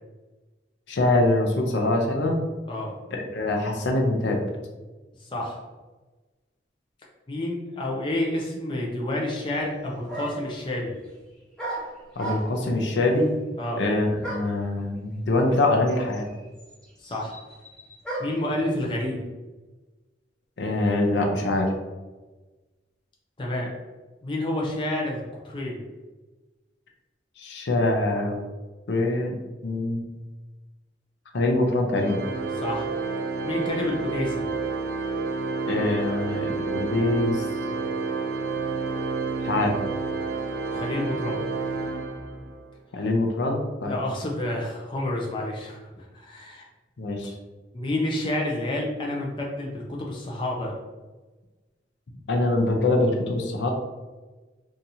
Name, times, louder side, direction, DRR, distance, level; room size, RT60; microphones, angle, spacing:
voice 1, 0.9-2.4 3.1-4.4 12.2-13.3 13.8-16.3 20.6-21.7 27.4-28.4 28.9-29.3 29.6-30.0 31.3-32.2 35.7-37.5 39.4-39.8 42.9-44.0 47.0-47.3 52.3-53.7, left 2 dB, 75° left, 1 dB, 0.5 m, -24 dB
voice 2, 5.2-5.6 7.3-10.9 13.6-13.8 17.0-17.3 18.2-19.2 23.4-23.7 24.2-25.9 32.5-32.9 33.4-34.5 40.7-41.4 43.8-46.7 47.7-50.8, left 1 dB, 25° left, -2 dB, 0.5 m, -29 dB
sound 1, 10.1-10.6 11.6-12.7 14.2-14.6 15.6-15.7 15.9-18.5, right 2 dB, 5° left, 1.0 m, -35 dB
Organ, 32.0-42.6, right 4 dB, 55° right, 0.4 m, -29 dB
2.7 x 2.4 x 4.1 m, 1.2 s
head